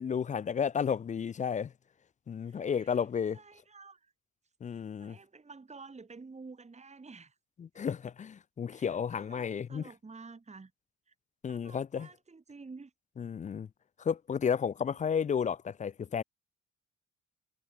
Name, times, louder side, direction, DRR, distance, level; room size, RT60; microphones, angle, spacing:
voice 1, 0.0-1.7 2.3-3.4 4.6-5.2 7.6-9.8 11.4-12.1 13.2-13.7 14.0-16.2, left 7 dB, 25° left, 0.3 m, -32 dB
voice 2, 2.4-3.1 3.3-4.1 4.7-7.4 8.7-10.7 11.1-11.2 11.5-12.9, right 4 dB, 20° right, 2.0 m, -51 dB
cardioid pair, 90°, 30 cm